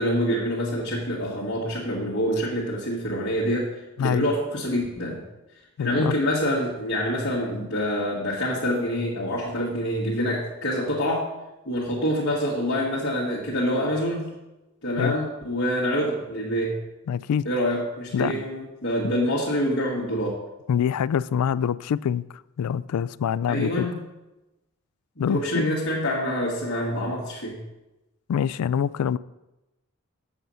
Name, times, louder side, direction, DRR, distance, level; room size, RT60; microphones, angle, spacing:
voice 1, 0.0-3.7 4.0-5.2 5.8-11.2 11.7-14.3 14.8-16.8 17.5-20.4 23.5-24.0 25.2-27.6, equal, 55° left, -6 dB, 1.8 m, -26 dB
voice 2, 5.8-6.1 15.0-15.1 17.1-17.5 18.1-18.4 20.7-22.2 22.6-23.9 25.2-25.8 28.3-29.2, left 8 dB, 90° left, 17 dB, 0.3 m, -25 dB
7.9 x 7.5 x 5.6 m, 1.0 s
head